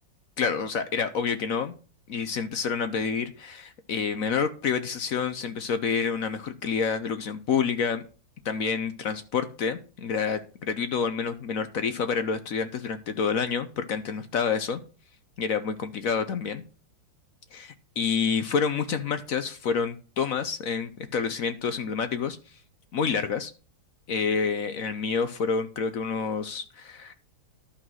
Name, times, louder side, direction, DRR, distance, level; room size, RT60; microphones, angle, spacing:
voice 1, 0.4-1.7 2.1-8.0 8.4-14.8 15.4-16.6 17.5-22.4 22.9-23.5 24.1-27.1, left 6 dB, 60° left, 10 dB, 1.0 m, -28 dB
11.5 x 5.8 x 6.2 m, 0.36 s
omnidirectional pair, 2.0 m